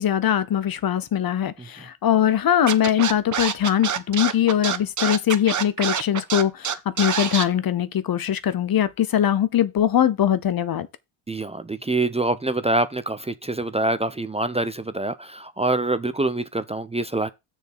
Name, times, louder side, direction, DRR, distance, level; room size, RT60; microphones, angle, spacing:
voice 1, 0.0-10.9, left 10 dB, 45° left, 0.9 m, -21 dB
Scratching (performance technique), 2.7-7.4, right 8 dB, 35° right, 1.2 m, -25 dB
voice 2, 11.3-17.3, right 2 dB, 15° right, 0.7 m, -25 dB
6.7 x 4.5 x 5.8 m
cardioid pair, 85°, 49 cm